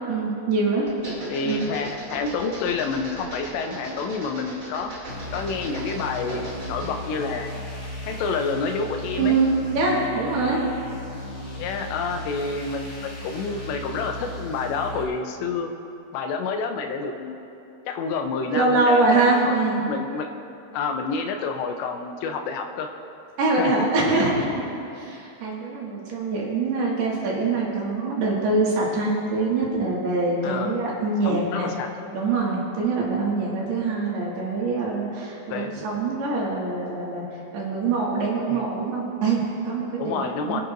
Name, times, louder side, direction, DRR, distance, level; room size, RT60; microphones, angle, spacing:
voice 1, 0.1-0.9 1.4-1.6 9.2-10.6 18.5-19.9 23.4-24.6 24.9-31.7 32.1-37.3 37.5-40.6, right 3 dB, 70° right, -4 dB, 3.9 m, -24 dB
sound 1, 0.9-7.0, right 1 dB, 25° right, 2.3 m, -38 dB
voice 2, 1.3-4.9 5.3-7.5 8.1-9.4 11.6-15.7 16.1-17.4 17.9-19.6 19.9-20.3 20.7-22.9 23.6-23.7 30.4-30.8 31.2-31.9 35.5-35.8 38.5-38.6 40.0-40.6, left 4 dB, 90° left, 4 dB, 3.0 m, -28 dB
sound 2, 5.1-15.0, left 1 dB, 40° left, 3.0 m, -36 dB
26.0 x 10.5 x 2.6 m, 2.8 s
omnidirectional pair, 4.9 m